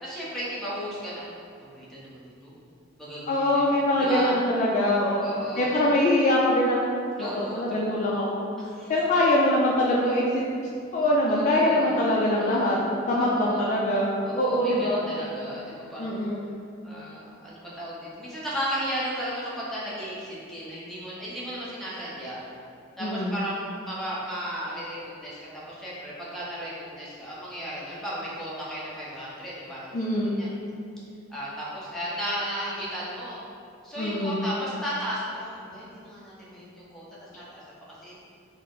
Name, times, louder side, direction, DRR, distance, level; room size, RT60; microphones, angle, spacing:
voice 1, 0.0-1.2 1.7-2.5 3.0-4.3 5.2-6.0 7.2-7.9 8.6-8.9 11.3-12.0 12.4-12.8 13.1-13.6 14.2-16.1 16.8-22.4 23.0-30.5 31.3-33.4 33.8-37.6 38.0-38.2, equal, ahead, -9 dB, 0.7 m, -35 dB
voice 2, 3.3-5.3 5.6-6.8 7.2-8.5 8.9-10.5 10.9-12.8 13.1-15.0 16.0-16.4 23.0-23.3 29.9-30.3 34.0-34.4, left 1 dB, 35° left, -4 dB, 0.3 m, -23 dB
4.1 x 2.0 x 3.8 m, 2.4 s
head